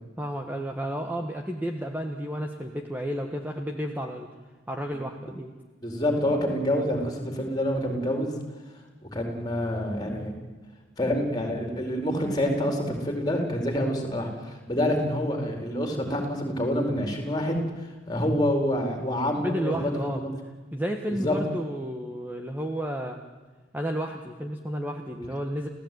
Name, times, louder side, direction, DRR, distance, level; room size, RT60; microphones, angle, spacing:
voice 1, 0.2-4.3 4.7-5.5 19.4-20.2 20.7-23.2 23.7-25.7, equal, 10° right, 3 dB, 1.5 m, -32 dB
voice 2, 5.8-8.3 9.1-10.3 11.0-17.6 18.1-19.9 20.2-20.3 21.2-21.3, left 1 dB, 20° left, 4 dB, 4.6 m, -27 dB
29.0 x 16.5 x 9.5 m, 1.3 s
head